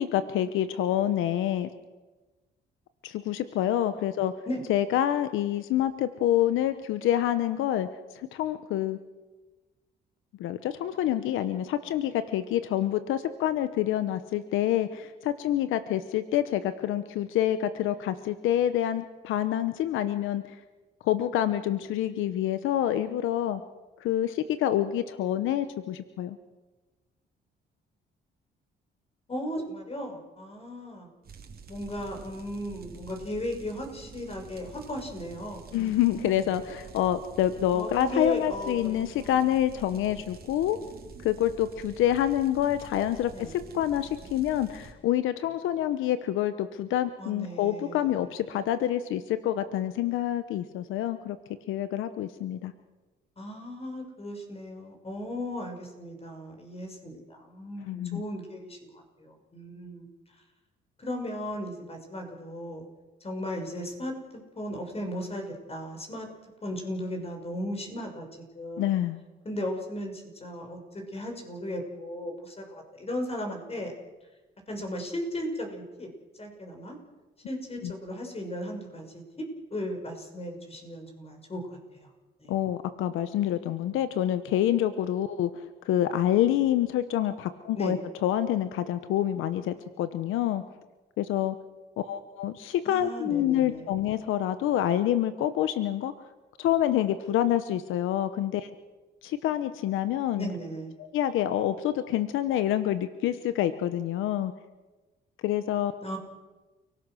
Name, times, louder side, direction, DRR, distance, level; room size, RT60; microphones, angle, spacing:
voice 1, 0.0-1.7 3.0-4.3 4.7-7.9 8.1-9.0 10.4-20.6 21.0-23.6 24.0-26.4 35.7-40.8 41.2-51.4 51.7-52.7 57.8-58.2 68.8-69.2 77.8-77.9 82.5-90.6 91.2-91.6 92.0-96.1 96.6-98.7 99.2-100.5 101.0-104.5 105.4-105.9, left 11 dB, 90° left, 11 dB, 1.0 m, -27 dB
voice 2, 29.3-31.1 31.7-36.4 37.7-39.4 40.0-40.2 43.3-43.5 47.2-48.3 53.4-60.1 61.0-62.8 63.2-66.3 66.6-68.9 69.4-73.9 74.7-76.1 76.4-77.0 77.4-82.1 82.4-82.5 87.7-88.0 92.8-93.9 100.4-100.9 106.0-106.2, equal, 30° left, 3 dB, 6.0 m, -36 dB
sound 1, 31.2-44.9, right 5 dB, 50° right, 3.3 m, -47 dB
29.5 x 18.0 x 6.4 m, 1.2 s
cardioid pair, 90°, 20 cm